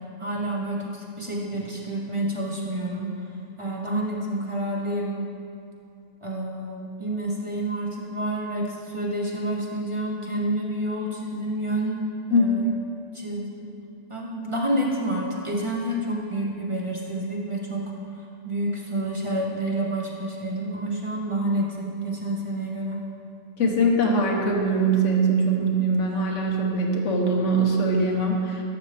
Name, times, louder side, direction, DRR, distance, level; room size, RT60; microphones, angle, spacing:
voice 1, 0.2-3.3 3.6-5.2 6.2-12.0 12.3-12.7 13.1-13.5 14.1-17.8 18.1-23.0, right 1 dB, 30° right, -3 dB, 1.0 m, -29 dB
voice 2, 23.6-28.6, right 2 dB, 80° left, 0 dB, 1.4 m, -22 dB
12.5 x 7.0 x 3.4 m, 2.5 s
omnidirectional pair, 1.2 m